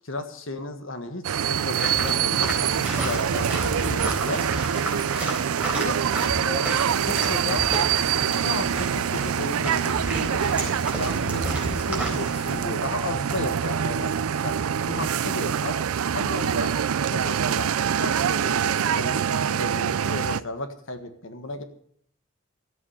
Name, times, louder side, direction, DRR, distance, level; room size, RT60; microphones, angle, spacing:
voice 1, 0.0-4.5 5.7-6.0 6.3-6.7 7.1-7.7 8.4-10.5 10.9-14.5 14.9-15.8 16.1-16.7 17.1-17.7 18.0-21.6, left 2 dB, 65° left, 7 dB, 1.6 m, -34 dB
sound 1, 1.2-20.4, right 8 dB, 85° right, 0.5 m, -25 dB
sound 2, 1.7-12.6, right 1 dB, 5° right, 4.0 m, -32 dB
13.5 x 8.3 x 8.6 m, 0.63 s
head